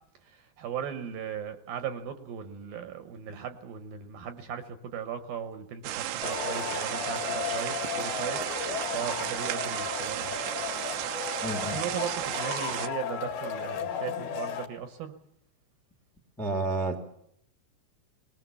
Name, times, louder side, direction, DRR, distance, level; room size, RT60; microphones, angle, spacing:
voice 1, 0.6-8.4 8.9-10.4 11.7-15.1, right 8 dB, 70° right, 9 dB, 2.6 m, -37 dB
sound 1, 5.8-12.9, right 13 dB, 85° right, 3.3 m, -34 dB
Male speech man speaking / Shout / Clapping, 6.2-14.7, left 7 dB, 60° left, 3.8 m, -35 dB
voice 2, 11.4-11.8 16.4-17.0, right 2 dB, ahead, 6 dB, 1.1 m, -30 dB
21.5 x 20.5 x 7.1 m, 0.71 s
omnidirectional pair, 5.1 m